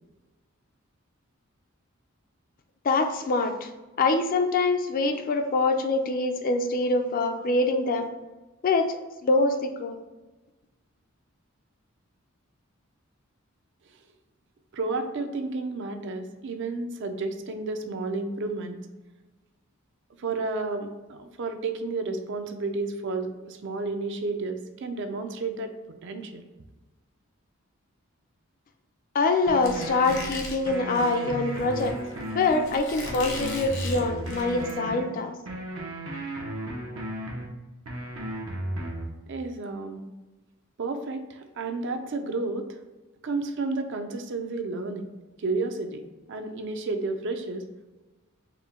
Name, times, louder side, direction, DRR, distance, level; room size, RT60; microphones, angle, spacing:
voice 1, 2.8-3.7 4.0-8.1 8.6-9.0 9.2-10.0 29.1-32.0 32.3-35.3, left 3 dB, 40° left, 6 dB, 0.4 m, -24 dB
voice 2, 14.7-18.9 20.2-25.7 26.0-26.4 39.3-40.0 40.8-42.8 43.2-45.1 45.4-47.6, right 3 dB, 60° right, 7 dB, 0.4 m, -31 dB
sound 1, 29.5-30.2 30.7-32.7 33.1-35.0 35.5-37.5 37.9-39.1, right 1 dB, 85° right, 0.8 m, -34 dB
Squeak, 29.6-34.7, left 2 dB, 70° left, 0.9 m, -39 dB
4.4 x 2.1 x 3.6 m, 1.2 s
head